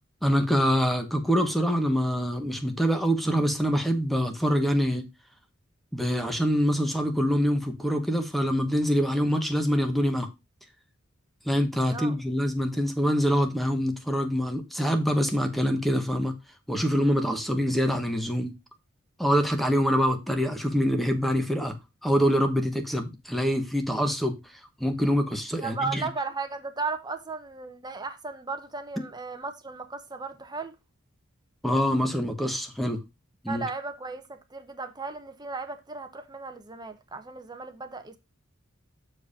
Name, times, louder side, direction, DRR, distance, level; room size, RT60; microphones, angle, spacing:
voice 1, 0.2-5.0 5.9-10.3 11.5-16.4 16.7-18.5 19.2-21.8 22.0-24.4 24.8-26.0 31.6-33.0 33.4-33.6, equal, ahead, 1.1 m, -25 dB
voice 2, 25.6-30.7 33.5-38.2, right 4 dB, 20° right, 0.9 m, -35 dB
7.0 x 4.7 x 4.9 m
head